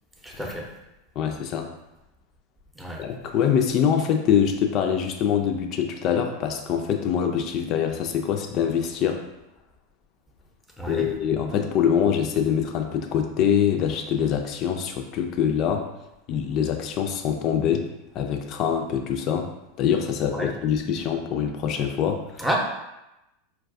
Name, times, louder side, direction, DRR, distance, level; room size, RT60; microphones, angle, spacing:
voice 1, 0.2-0.7 2.8-3.0 10.8-11.1 20.3-20.5 22.4-22.6, right 1 dB, 5° right, -1 dB, 0.7 m, -29 dB
voice 2, 1.2-1.7 3.0-9.2 10.9-15.9 16.3-17.9 18.1-19.5 19.8-22.5, left 8 dB, 45° left, 5 dB, 0.4 m, -24 dB
4.4 x 2.3 x 2.5 m, 0.93 s
hypercardioid pair, 90°, 0 cm